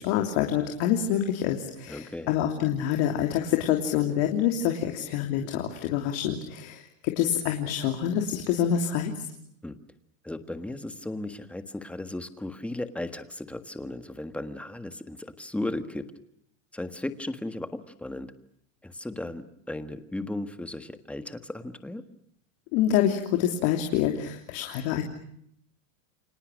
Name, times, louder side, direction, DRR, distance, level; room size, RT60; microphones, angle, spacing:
voice 1, 0.0-9.1 22.7-25.0, left 10 dB, 55° left, 4 dB, 3.2 m, -26 dB
voice 2, 1.9-2.3 9.6-9.8 10.2-16.1 16.7-18.3 18.8-22.0, left 1 dB, 5° left, 9 dB, 1.5 m, -36 dB
30.0 x 25.5 x 6.4 m, 0.70 s
supercardioid pair, 155°, 41 cm